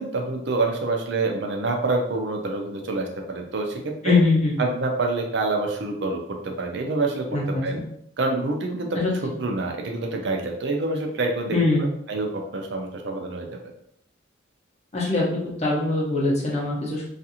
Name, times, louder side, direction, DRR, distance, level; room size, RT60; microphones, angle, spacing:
voice 1, 0.0-4.2 4.6-7.3 7.6-7.8 8.2-8.9 9.4-13.5, right 3 dB, 55° right, 2 dB, 0.5 m, -27 dB
voice 2, 4.0-4.6 7.3-7.7 8.9-9.1 11.5-11.8 14.9-17.1, left 3 dB, 30° left, -3 dB, 0.7 m, -22 dB
2.4 x 2.4 x 2.8 m, 0.73 s
head